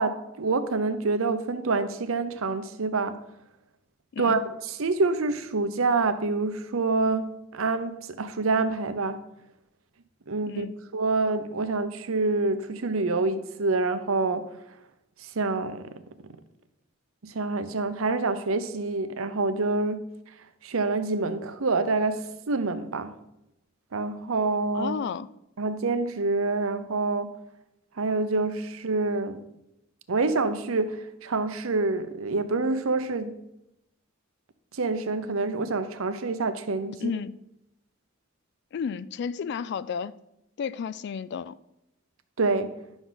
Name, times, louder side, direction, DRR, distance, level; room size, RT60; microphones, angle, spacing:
voice 1, 0.0-3.2 4.2-4.4 4.7-9.2 10.3-10.7 10.9-14.5 15.2-15.9 17.2-20.0 20.6-23.1 23.9-25.0 25.6-27.3 28.0-29.4 30.1-33.3 34.7-37.1 42.4-42.7, right 3 dB, 90° right, 0.7 m, -27 dB
voice 2, 4.1-4.5 10.5-10.7 24.7-25.3 37.0-37.4 38.7-40.1 40.6-41.6, left 6 dB, 55° left, 0.3 m, -32 dB
11.0 x 6.1 x 3.9 m
head